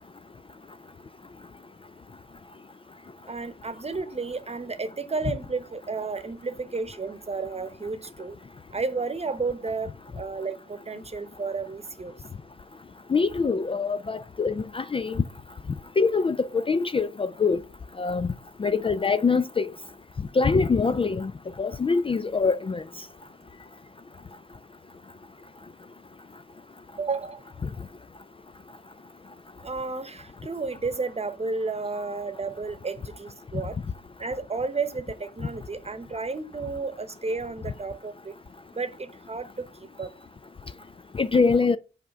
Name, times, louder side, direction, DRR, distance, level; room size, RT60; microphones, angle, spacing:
voice 1, 3.3-8.4 8.7-12.1 27.0-27.4 29.6-33.8 34.2-38.3 38.8-39.7 40.0-40.1, right 4 dB, 30° right, 1.0 m, -32 dB
voice 2, 13.1-15.2 16.0-17.6 18.0-18.3 18.6-19.7 20.4-21.3 21.6-22.8 41.1-41.8, left 4 dB, 25° left, 0.4 m, -24 dB
5.7 x 4.9 x 6.6 m
cardioid pair, 55°, 20 cm